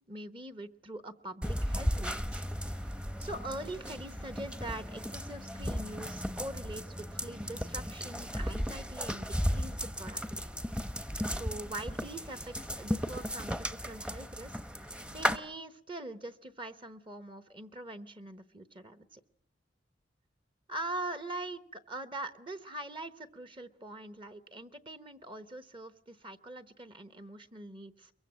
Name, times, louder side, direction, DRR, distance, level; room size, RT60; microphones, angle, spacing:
voice 1, 0.1-2.4 2.8-2.9 3.2-10.4 11.3-14.6 15.1-19.2 20.7-28.1, right 1 dB, 30° right, 11 dB, 1.0 m, -43 dB
sound 1, 1.4-15.4, equal, 5° right, 0.9 m, -35 dB
23.0 x 22.5 x 7.5 m, 0.69 s
head